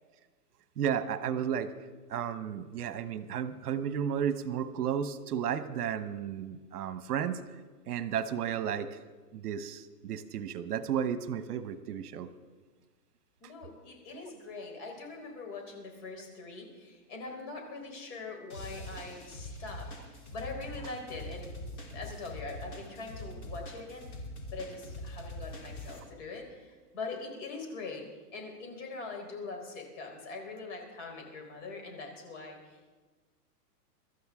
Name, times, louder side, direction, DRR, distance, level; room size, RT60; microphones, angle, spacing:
voice 1, 0.8-1.7 2.1-7.4 7.9-9.0 9.3-12.3 14.1-14.2, right 8 dB, 70° right, 12 dB, 1.1 m, -33 dB
voice 2, 13.4-21.5 21.9-24.1 24.5-28.1 28.3-32.9, left 3 dB, 45° left, 2 dB, 4.2 m, -42 dB
sound 1, 18.5-26.0, left 1 dB, 30° left, 3.4 m, -43 dB
24.5 x 13.0 x 3.6 m, 1.3 s
hypercardioid pair, 155°, 48 cm